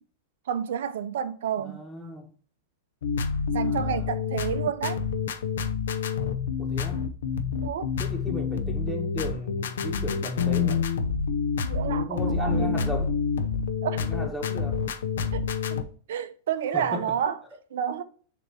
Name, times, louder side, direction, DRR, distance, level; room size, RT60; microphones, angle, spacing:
voice 1, 0.5-1.8 3.5-5.0 7.6-7.9 11.6-13.0 13.8-14.0 15.3-17.4 17.7-18.0, right 8 dB, 75° right, 0.7 m, -30 dB
voice 2, 1.6-2.3 3.6-4.1 6.6-7.1 8.0-10.8 11.8-13.1 14.0-14.8 16.7-17.1, left 1 dB, 5° left, 1.6 m, -35 dB
sound 1, 3.0-15.8, left 6 dB, 80° left, 0.7 m, -28 dB
6.9 x 3.0 x 4.5 m
hypercardioid pair, 120°, 0 cm